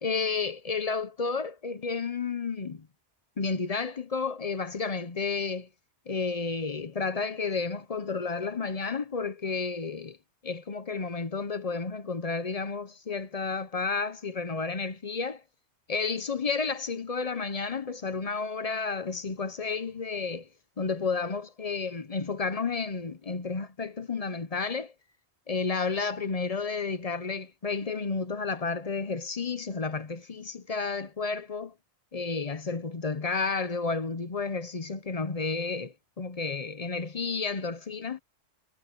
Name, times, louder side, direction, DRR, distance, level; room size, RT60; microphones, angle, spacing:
voice 1, 0.0-2.9 3.4-5.7 6.1-10.2 10.4-15.4 15.9-20.5 20.8-24.9 25.5-31.7 32.1-38.2, left 4 dB, 35° left, 0.8 m, -31 dB
omnidirectional pair, 1.2 m